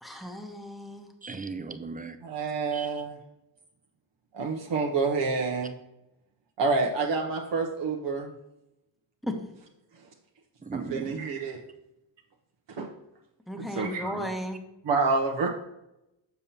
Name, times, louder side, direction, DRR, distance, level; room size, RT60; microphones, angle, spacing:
voice 1, 0.0-1.1 9.2-9.4 13.5-14.6, equal, ahead, 3 dB, 1.0 m, -35 dB
voice 2, 1.2-2.2 2.7-2.9 10.6-11.2, right 4 dB, 20° right, 9 dB, 0.5 m, -37 dB
voice 3, 2.2-3.2 4.3-5.7 6.6-8.3 10.7-11.6 12.7-12.9 13.8-14.3 14.8-15.5, right 4 dB, 65° right, 0 dB, 0.9 m, -28 dB
7.1 x 7.0 x 2.8 m, 0.89 s
wide cardioid pair, 105°, 46 cm